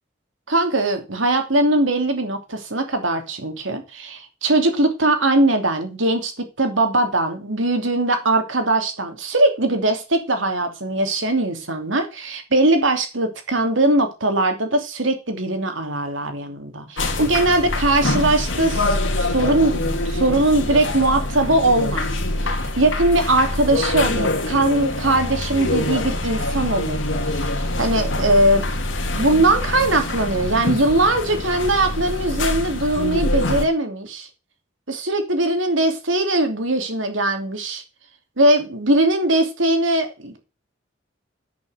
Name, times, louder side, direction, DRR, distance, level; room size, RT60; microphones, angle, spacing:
voice 1, 0.5-6.3 6.6-22.1 22.4-27.0 27.3-27.5 27.8-28.7 29.2-34.3 34.9-37.8 38.4-40.4, right 2 dB, 75° right, 2.8 m, -20 dB
sound 1, 17.0-33.7, left 2 dB, 75° left, 2.5 m, -24 dB
11.0 x 6.2 x 7.9 m
head